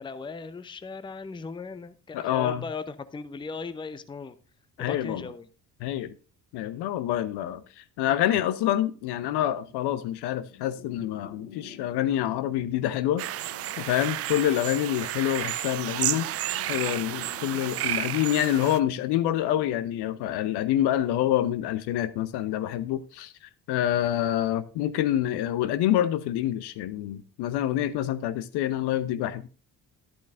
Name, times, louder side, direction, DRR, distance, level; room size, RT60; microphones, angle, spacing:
voice 1, 0.0-4.4 4.8-5.5, left 4 dB, 10° left, 0.6 m, -37 dB
voice 2, 2.1-2.6 4.8-5.3 5.8-6.1 6.5-13.2 13.8-16.3 16.7-23.3 23.7-29.5, left 12 dB, 55° left, 0.8 m, -27 dB
sound 1, 8.6-20.9, left 7 dB, 80° left, 1.4 m, -50 dB
sound 2, 13.2-18.8, right 13 dB, 30° right, 0.4 m, -31 dB
11.5 x 11.0 x 2.5 m
figure-of-eight pair, 45°, 49 cm